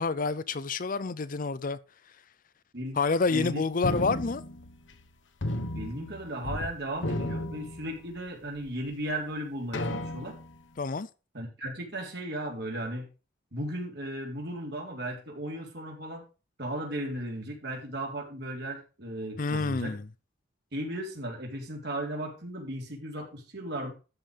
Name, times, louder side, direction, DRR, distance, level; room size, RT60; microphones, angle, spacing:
voice 1, 0.0-1.8 3.0-4.4 10.8-11.1 19.4-20.1, left 4 dB, 45° left, 0.6 m, -28 dB
voice 2, 3.3-3.6 5.7-10.3 11.3-13.1 13.5-16.2 16.6-19.9 20.7-23.9, right 1 dB, 60° right, 3.8 m, -36 dB
sound 1, 3.8-5.1 5.4-6.7 7.0-8.3 8.9-9.0 9.7-10.6, left 1 dB, 85° left, 1.3 m, -34 dB
13.0 x 5.3 x 5.3 m
head